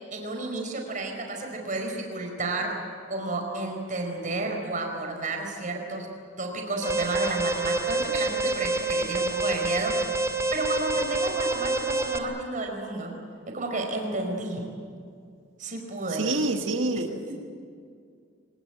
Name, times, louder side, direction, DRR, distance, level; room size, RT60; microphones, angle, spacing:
voice 1, 0.1-2.8 3.1-6.1 6.4-10.1 10.5-13.1 13.5-14.7 15.6-16.3 16.9-17.3, right 2 dB, 40° right, 2 dB, 4.9 m, -31 dB
Alarm, 6.8-12.2, right 2 dB, 15° right, 2.0 m, -27 dB
voice 2, 16.1-17.1, right 2 dB, 80° right, 5 dB, 2.0 m, -26 dB
23.5 x 21.0 x 8.9 m, 2.2 s
head